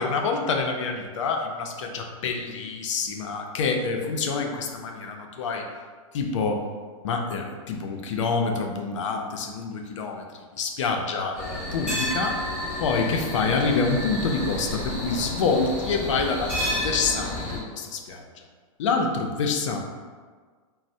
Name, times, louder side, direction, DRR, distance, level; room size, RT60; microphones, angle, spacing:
voice 1, 0.0-5.6 6.1-6.6 7.0-10.2 10.6-12.4 12.8-18.2 18.8-19.8, left 4 dB, 60° left, 3 dB, 0.4 m, -27 dB
sound 1, 11.4-17.6, left 1 dB, 5° right, 1.2 m, -30 dB
4.1 x 2.0 x 2.6 m, 1.5 s
supercardioid pair, 180°, 18 cm